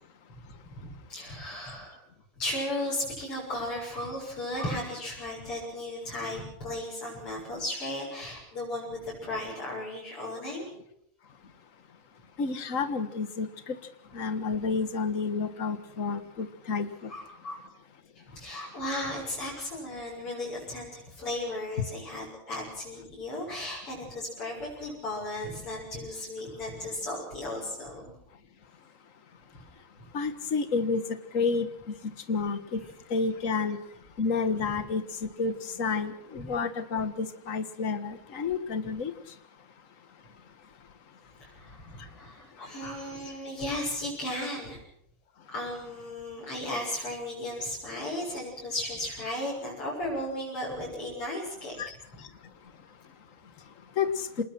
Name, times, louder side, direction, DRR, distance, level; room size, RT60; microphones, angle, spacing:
voice 1, 0.8-2.0 2.4-10.6 17.1-17.6 18.3-28.0 29.5-29.6 36.4-36.5 41.4-44.8 45.5-51.7, left 1 dB, 90° left, 7.7 m, -35 dB
voice 2, 12.4-13.5 14.1-17.1 30.1-31.0 31.3-31.7 32.3-32.8 33.1-33.8 34.2-35.5 35.8-39.1 51.8-51.9 54.0-54.1, left 4 dB, 40° left, 1.8 m, -29 dB
26.5 x 20.5 x 6.1 m
omnidirectional pair, 2.4 m